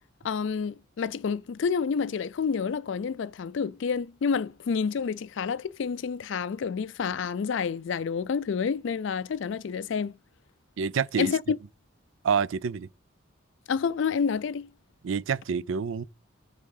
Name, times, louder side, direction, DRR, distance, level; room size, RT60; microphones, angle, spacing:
voice 1, 0.2-10.1 11.2-11.6 13.7-14.7, left 6 dB, 65° left, 0.4 m, -29 dB
voice 2, 10.8-11.3 12.2-12.9 15.0-16.0, right 6 dB, 70° right, 0.4 m, -27 dB
8.3 x 3.6 x 5.5 m
head